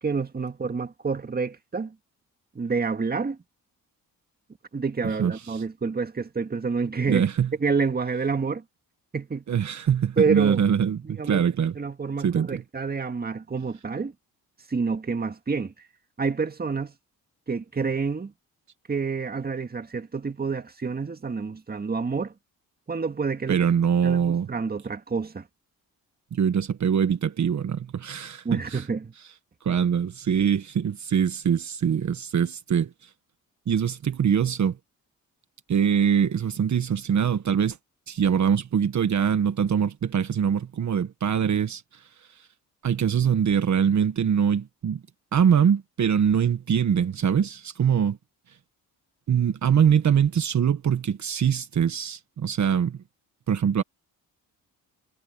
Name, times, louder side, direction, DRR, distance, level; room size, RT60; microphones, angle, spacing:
voice 1, 0.0-1.9 2.6-3.4 4.7-7.3 7.6-8.6 9.1-9.4 10.2-10.6 11.0-11.4 11.8-14.1 14.7-15.7 16.2-16.9 17.5-18.3 18.9-22.3 22.9-23.6 24.0-25.5 28.5-29.1, right 5 dB, 25° right, 1.9 m, -28 dB
voice 2, 5.2-5.6 7.1-7.5 9.5-11.7 12.2-12.6 23.5-24.5 26.3-28.8 29.6-32.9 33.7-34.8 35.7-37.8 38.1-42.0 42.8-45.0 45.3-48.2 49.3-53.0 53.5-53.8, right 8 dB, 55° right, 1.5 m, -23 dB
cardioid pair, 85°, 35 cm